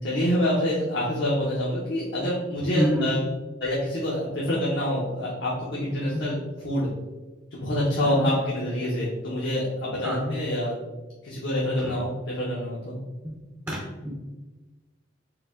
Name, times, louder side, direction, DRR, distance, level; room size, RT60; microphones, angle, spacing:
voice 1, 0.0-3.3 3.6-6.9 7.5-10.8 11.2-13.0, left 1 dB, 65° left, -6 dB, 0.8 m, -26 dB
voice 2, 2.7-3.1 6.1-6.2 8.0-8.3 10.0-10.3 11.8-12.0 13.2-13.4 13.7-14.1, equal, 15° right, -5 dB, 0.6 m, -28 dB
4.7 x 2.2 x 3.6 m, 1.2 s
head